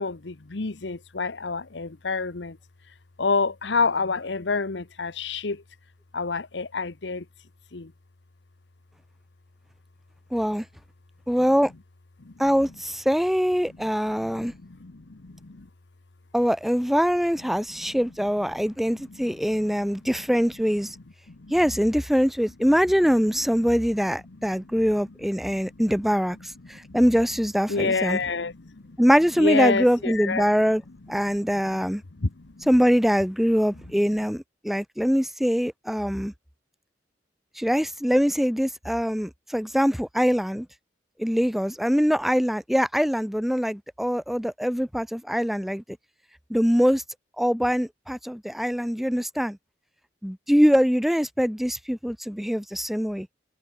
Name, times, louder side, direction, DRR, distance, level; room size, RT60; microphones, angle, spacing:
voice 1, 0.0-2.6 3.2-5.6 6.1-7.2 7.7-7.9 12.2-12.3 13.6-13.8 14.2-15.7 17.5-18.0 18.5-18.6 18.9-20.1 21.3-21.5 23.6-24.8 25.4-26.0 26.6-27.0 27.7-29.0 29.4-30.6 31.1-32.7 33.8-33.9, left 4 dB, 80° left, 1.1 m, -30 dB
voice 2, 10.3-10.6 11.3-11.7 12.4-14.5 16.3-20.9 21.5-26.4 26.7-28.2 29.0-30.8 31.1-32.0 32.7-36.3 37.6-40.7 41.2-45.8 46.5-47.0 47.4-49.6 50.2-53.3, equal, ahead, 0.8 m, -23 dB
head